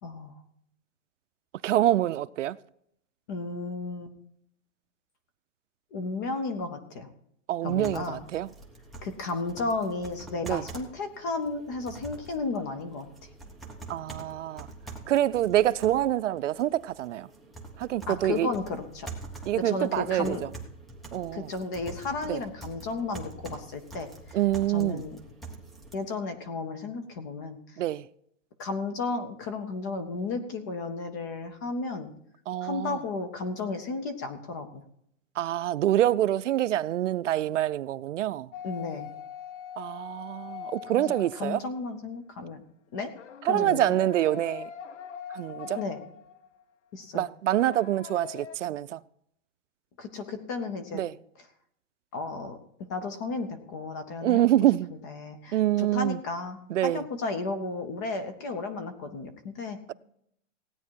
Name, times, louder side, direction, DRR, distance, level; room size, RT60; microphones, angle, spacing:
voice 1, 0.0-0.3 3.3-4.1 5.9-7.1 7.6-8.2 9.0-13.1 18.1-19.1 19.6-20.4 21.3-24.4 24.7-25.2 25.9-27.6 28.6-32.1 32.6-34.8 38.6-39.1 41.0-42.6 42.9-43.1 43.4-44.0 45.7-46.0 46.9-47.3 50.0-51.0 52.1-52.6 52.9-54.4 54.9-59.9, left 3 dB, 15° left, 0.5 m, -33 dB
voice 2, 1.6-2.6 7.5-8.5 10.4-10.6 13.9-14.7 15.1-17.3 17.8-18.5 19.5-20.4 21.1-21.5 22.3-22.4 24.3-25.0 27.8-28.0 32.5-33.0 35.4-38.5 39.8-41.6 43.5-44.7 45.3-45.8 47.1-49.0 50.9-51.1 54.2-54.9 55.5-56.2 56.7-57.0, right 13 dB, 75° right, 0.6 m, -26 dB
sound 1, 7.7-25.9, right 2 dB, ahead, 1.0 m, -45 dB
sound 2, 38.5-42.0 43.2-46.6 47.6-48.6, left 8 dB, 70° left, 1.0 m, -42 dB
16.5 x 9.5 x 4.5 m
hypercardioid pair, 165°, 37 cm